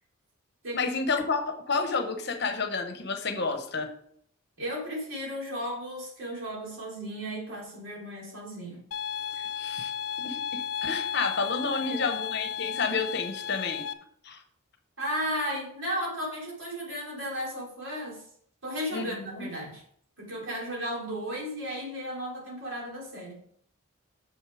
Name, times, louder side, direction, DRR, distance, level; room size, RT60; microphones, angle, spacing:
voice 1, 0.7-3.9 9.5-9.9 10.2-13.9 14.2-14.4 18.9-19.5, left 4 dB, 55° left, 7 dB, 1.0 m, -30 dB
voice 2, 4.6-8.8 9.3-9.4 11.7-12.0 15.0-18.2 18.6-19.8 20.2-23.4, equal, 65° right, -4 dB, 3.5 m, -34 dB
sound 1, 8.9-13.9, left 8 dB, 80° left, 0.6 m, -34 dB
6.5 x 6.3 x 4.9 m, 0.65 s
head